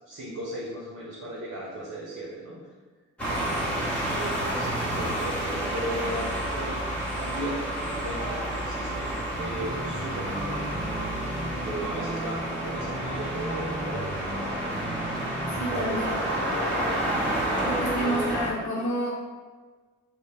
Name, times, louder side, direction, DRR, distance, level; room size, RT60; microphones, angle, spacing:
voice 1, 0.0-2.6 3.2-6.9 7.2-15.3 15.7-17.0 17.3-18.4, right 1 dB, 45° right, -6 dB, 1.0 m, -37 dB
sound 1, 3.2-18.5, right 1 dB, 5° left, 1.3 m, -30 dB
voice 2, 3.3-3.6 15.6-16.2 17.6-19.1, right 1 dB, 50° left, -6 dB, 1.0 m, -30 dB
sound 2, 9.4-16.0, right 1 dB, 25° right, 0.7 m, -36 dB
3.1 x 2.2 x 4.3 m, 1.4 s
hypercardioid pair, 40°, 36 cm